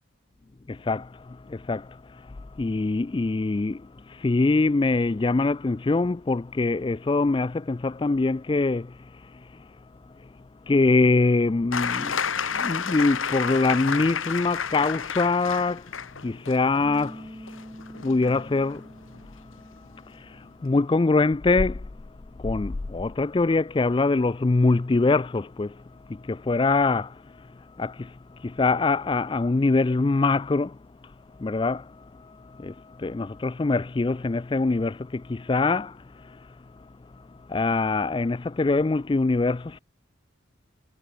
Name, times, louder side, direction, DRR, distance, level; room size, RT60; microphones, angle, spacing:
voice 1, 0.7-9.7 10.2-10.3 10.7-15.9 16.2-17.5 18.0-18.9 19.2-19.3 20.1-21.9 22.3-31.1 31.4-36.5 37.1-39.8, left 3 dB, 25° left, 0.3 m, -24 dB
sound 1, 11.7-19.3 20.4-20.5, left 6 dB, 80° left, 1.7 m, -31 dB
Bass guitar, 16.8-23.1, equal, 10° right, 7.9 m, -47 dB
head